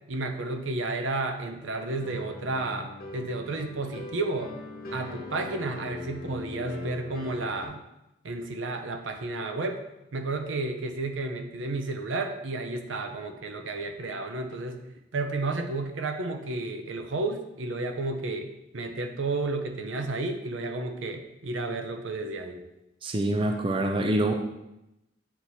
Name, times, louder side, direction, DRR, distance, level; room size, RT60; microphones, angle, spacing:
voice 1, 0.1-4.5 4.9-7.8 8.2-9.8 10.1-14.8 15.1-18.5 18.7-22.6, right 2 dB, 75° right, 6 dB, 0.7 m, -32 dB
sound 1, 1.9-7.7, left 2 dB, 50° left, 1.2 m, -41 dB
voice 2, 23.0-24.3, right 1 dB, 25° right, 3 dB, 0.4 m, -25 dB
8.0 x 3.0 x 4.1 m, 0.89 s
head